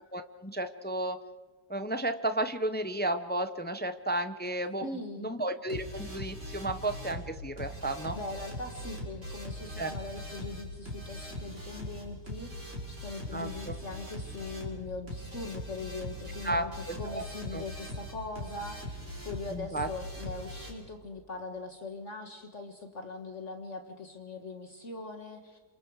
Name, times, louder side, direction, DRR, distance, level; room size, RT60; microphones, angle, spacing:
voice 1, 0.1-1.2 1.7-4.8 5.2-8.2 9.8-9.9 13.3-13.7 16.4-17.2 17.5-17.6 19.5-19.9, right 1 dB, 15° left, 9 dB, 0.4 m, -33 dB
voice 2, 4.8-5.3 8.1-16.7 17.0-25.6, left 3 dB, 45° left, 4 dB, 1.8 m, -41 dB
sound 1, 5.7-20.7, left 1 dB, 45° right, 5.5 m, -41 dB
28.0 x 27.5 x 4.8 m, 1.4 s
omnidirectional pair, 1.8 m